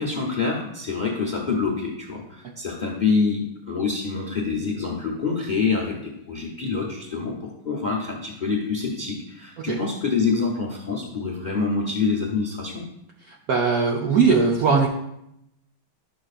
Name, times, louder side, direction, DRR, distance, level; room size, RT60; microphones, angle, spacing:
voice 1, 0.0-12.8, left 4 dB, 50° left, -1 dB, 0.5 m, -26 dB
voice 2, 13.5-14.9, right 5 dB, 75° right, 0 dB, 0.8 m, -19 dB
11.0 x 6.2 x 2.4 m, 0.81 s
omnidirectional pair, 2.3 m